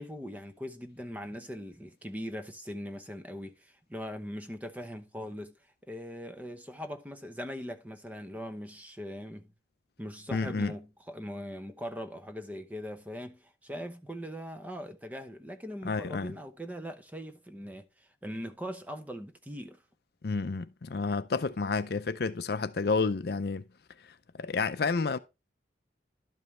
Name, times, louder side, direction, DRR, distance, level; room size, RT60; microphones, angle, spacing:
voice 1, 0.0-5.6 5.9-9.5 10.0-19.8, equal, 10° right, 0.7 m, -41 dB
voice 2, 10.3-10.7 15.8-16.3 20.2-23.6 24.4-25.2, left 4 dB, 55° left, 0.5 m, -30 dB
12.0 x 5.4 x 3.1 m
head